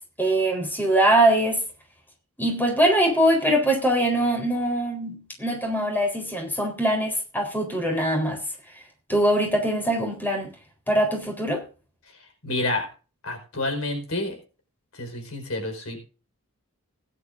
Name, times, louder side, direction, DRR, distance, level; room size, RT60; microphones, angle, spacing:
voice 1, 0.2-1.6 2.4-8.4 9.1-10.5 10.9-11.6, right 1 dB, 10° left, 4.1 m, -22 dB
voice 2, 12.4-12.9 13.2-14.4 14.9-16.0, left 2 dB, 70° left, 4.9 m, -29 dB
20.0 x 11.0 x 2.6 m
head